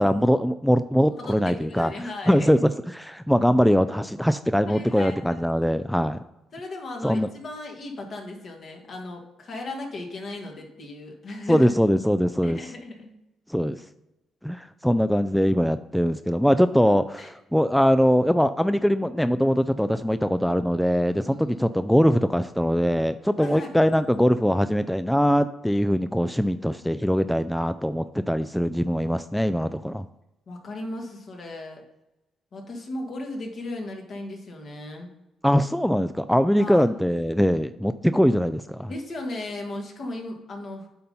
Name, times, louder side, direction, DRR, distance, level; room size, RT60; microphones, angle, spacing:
voice 1, 0.0-1.9 2.3-6.2 7.0-7.3 11.5-12.6 13.5-13.8 14.4-17.2 17.5-30.1 35.4-38.9, equal, ahead, 11 dB, 0.3 m, -22 dB
voice 2, 1.2-2.5 4.7-5.4 6.5-11.7 12.4-13.1 16.9-17.3 21.1-21.6 23.4-23.7 30.5-31.8 32.5-35.1 36.5-36.8 38.9-40.9, left 2 dB, 55° left, 2 dB, 1.8 m, -36 dB
8.6 x 4.0 x 5.5 m, 0.93 s
cardioid pair, 90°, 0 cm